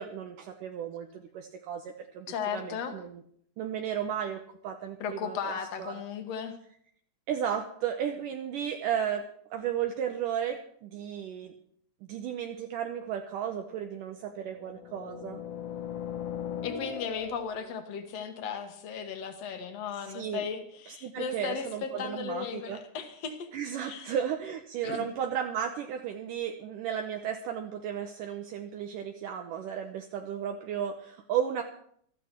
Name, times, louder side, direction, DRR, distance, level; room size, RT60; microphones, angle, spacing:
voice 1, 0.0-2.3 2.5-3.2 3.6-5.4 5.8-6.0 7.3-11.5 12.1-15.4 19.5-19.6 20.1-20.5 20.9-22.8 23.5-31.6, right 9 dB, 80° right, 4 dB, 1.9 m, -34 dB
voice 2, 2.3-3.0 5.0-6.5 16.6-23.5 23.8-24.1 24.8-25.1, left 6 dB, 65° left, 7 dB, 1.6 m, -36 dB
sound 1, 13.0-13.1 14.2-17.7, left 9 dB, 80° left, 1.3 m, -39 dB
16.5 x 13.5 x 4.4 m, 0.64 s
omnidirectional pair, 4.8 m